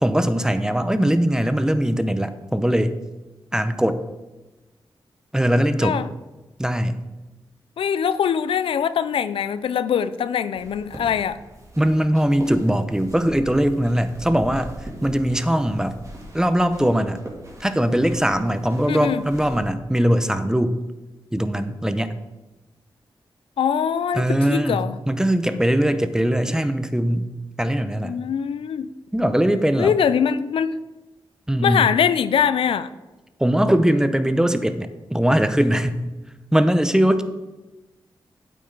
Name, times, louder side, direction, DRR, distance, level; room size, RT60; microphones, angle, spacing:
voice 1, 0.0-3.0 3.5-4.0 5.3-6.0 6.6-7.0 11.8-14.7 15.0-16.0 16.3-17.2 17.6-20.8 21.3-22.1 24.1-27.3 27.6-28.1 29.1-29.9 31.5-31.8 33.4-36.0 36.5-37.2, equal, 5° right, 11 dB, 0.7 m, -20 dB
voice 2, 7.8-11.4 18.9-19.2 23.6-25.0 28.0-28.9 29.8-30.8 31.6-32.9, left 8 dB, 90° left, 14 dB, 0.4 m, -22 dB
sound 1, 10.6-19.6, equal, 35° right, 2.5 m, -41 dB
8.7 x 8.5 x 3.9 m, 1.1 s
cardioid pair, 70°, 9 cm